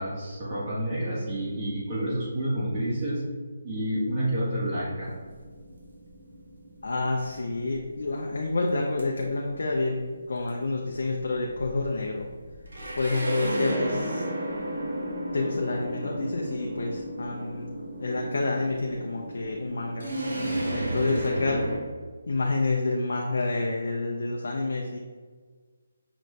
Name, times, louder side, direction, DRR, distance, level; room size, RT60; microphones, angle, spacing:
voice 1, 0.0-3.3 3.6-5.1, right 1 dB, 25° right, -8 dB, 1.4 m, -29 dB
sound 1, 5.0-21.8, right 1 dB, 70° right, 1.4 m, -34 dB
voice 2, 6.8-10.0 10.3-12.3 13.0-14.3 15.3-17.7 18.0-20.1 20.7-21.6 22.3-25.0, left 2 dB, 70° left, 0 dB, 0.5 m, -28 dB
5.9 x 2.5 x 3.2 m, 1.5 s
hypercardioid pair, 165°, 0 cm